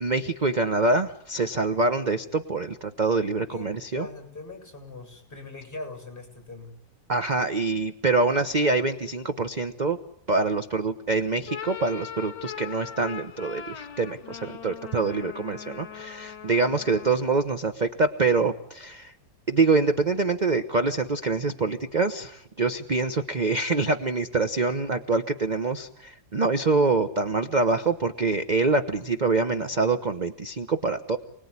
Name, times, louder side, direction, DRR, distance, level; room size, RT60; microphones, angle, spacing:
voice 1, 0.0-4.1 7.1-10.0 10.3-19.1 19.5-31.2, right 3 dB, 30° right, 8 dB, 1.0 m, -25 dB
voice 2, 3.5-6.8, left 2 dB, 30° left, 5 dB, 7.3 m, -41 dB
sound 1, 11.3-17.3, left 8 dB, 70° left, 2.5 m, -40 dB
29.0 x 20.5 x 9.7 m, 0.75 s
omnidirectional pair, 2.0 m